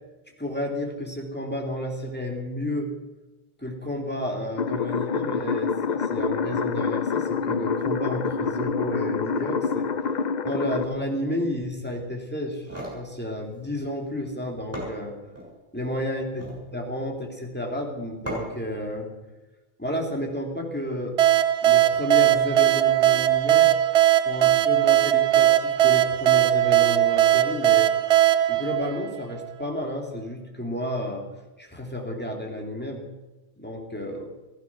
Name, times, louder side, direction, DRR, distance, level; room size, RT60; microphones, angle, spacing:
voice 1, 0.4-2.9 3.6-9.9 10.4-15.1 15.7-19.1 19.8-21.2 21.6-23.7 24.2-27.9 28.5-31.3 31.6-33.0 33.6-34.3, left 1 dB, 10° left, 0 dB, 2.9 m, -31 dB
sound 1, 4.6-10.8, left 6 dB, 45° left, 0.7 m, -27 dB
sound 2, 12.4-13.0 14.3-14.4 14.7-15.5 16.2-16.6 18.3-18.7, equal, 25° right, 6.6 m, -35 dB
sound 3, 21.2-29.6, right 13 dB, 80° right, 1.0 m, -19 dB
15.5 x 15.0 x 6.1 m, 1.1 s
omnidirectional pair, 1.2 m